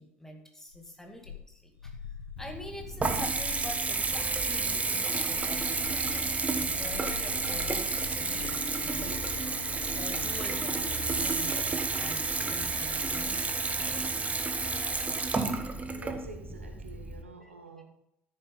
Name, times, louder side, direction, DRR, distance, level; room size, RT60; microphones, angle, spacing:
voice 1, 0.0-9.4 10.0-13.5 13.7-14.0 17.4-17.5, left 1 dB, 5° left, 3 dB, 2.2 m, -46 dB
sound 1, 0.7-3.9 5.1-8.6, left 7 dB, 80° left, 0.5 m, -45 dB
Water tap faucet / Bathtub (filling or washing) / Trickle dribble, 2.4-17.2, right 3 dB, 20° right, 1.2 m, -31 dB
Bowed string instrument, 8.2-13.1, left 10 dB, 45° left, 1.2 m, -46 dB
voice 2, 15.8-17.8, right 3 dB, 85° right, 4 dB, 1.2 m, -47 dB
13.5 x 7.3 x 4.0 m, 0.79 s
figure-of-eight pair, 60°, 7 cm